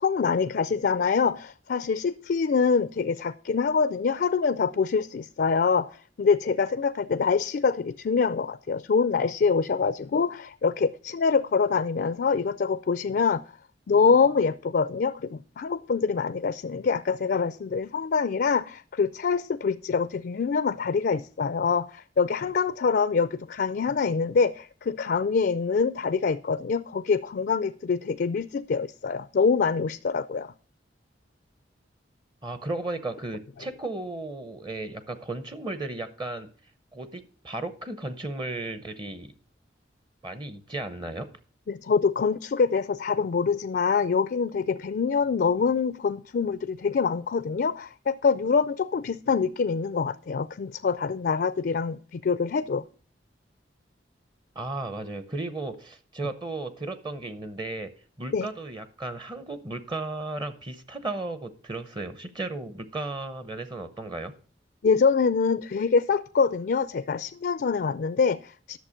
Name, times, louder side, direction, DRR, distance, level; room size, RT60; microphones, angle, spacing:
voice 1, 0.0-13.4 13.9-30.5 41.7-52.8 58.3-58.5 64.8-68.8, left 5 dB, 55° left, 0.4 m, -25 dB
voice 2, 32.4-36.5 36.9-39.3 40.2-41.3 54.5-57.9 58.2-64.3, right 2 dB, 25° right, 0.8 m, -35 dB
11.5 x 6.8 x 5.1 m
head